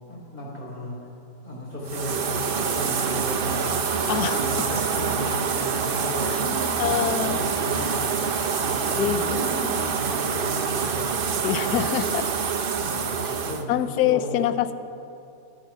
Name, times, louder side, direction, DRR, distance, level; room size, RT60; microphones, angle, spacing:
voice 1, 0.1-1.1 1.4-3.8 4.1-11.8 12.7-14.5, equal, 30° left, -5 dB, 3.6 m, -35 dB
sound 1, 1.9-13.6, right 6 dB, 55° right, 0.6 m, -26 dB
voice 2, 4.1-4.7 6.2-6.4 6.8-7.4 9.0-9.4 11.4-12.3 13.7-14.7, left 11 dB, 75° left, 12 dB, 1.0 m, -25 dB
12.5 x 11.5 x 5.8 m, 2.6 s
omnidirectional pair, 1.8 m